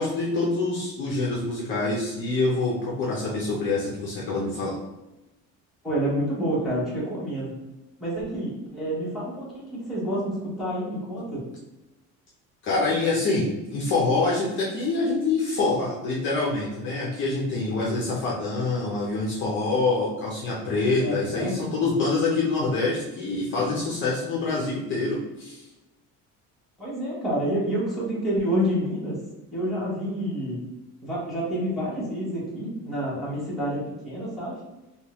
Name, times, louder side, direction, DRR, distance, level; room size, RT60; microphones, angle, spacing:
voice 1, 0.0-4.7 12.6-25.6, left 3 dB, 40° left, -4 dB, 0.6 m, -26 dB
voice 2, 5.8-7.5 8.0-11.4 21.0-21.5 26.8-29.2 29.5-30.6 31.0-34.6, equal, ahead, -9 dB, 1.1 m, -28 dB
3.5 x 2.3 x 2.9 m, 1.0 s
cardioid pair, 175°, 31 cm